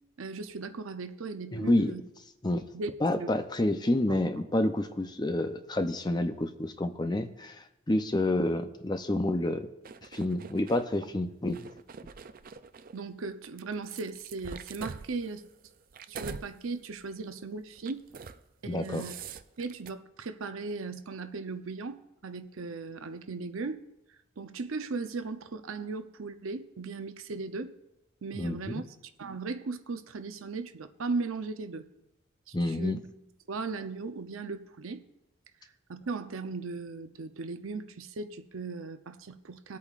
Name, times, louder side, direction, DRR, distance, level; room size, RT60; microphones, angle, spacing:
voice 1, 0.2-2.0 2.7-2.9 3.2-3.3 12.9-15.4 16.1-18.0 18.6-19.2 19.6-23.8 24.4-27.7 28.2-28.8 29.2-31.9 32.5-32.9 33.5-35.0 35.9-39.8, right 4 dB, 85° right, 9 dB, 0.7 m, -37 dB
voice 2, 1.5-1.9 2.4-2.7 3.0-9.7 10.1-11.7 18.6-19.0 28.3-28.8 32.5-33.0, left 1 dB, 20° left, 8 dB, 0.5 m, -29 dB
sound 1, 9.8-10.9 11.4-13.0 13.6-16.5 16.9-17.1 17.8-18.4 18.7-19.9, right 5 dB, 45° right, 0.4 m, -44 dB
19.0 x 8.4 x 2.5 m, 0.91 s
head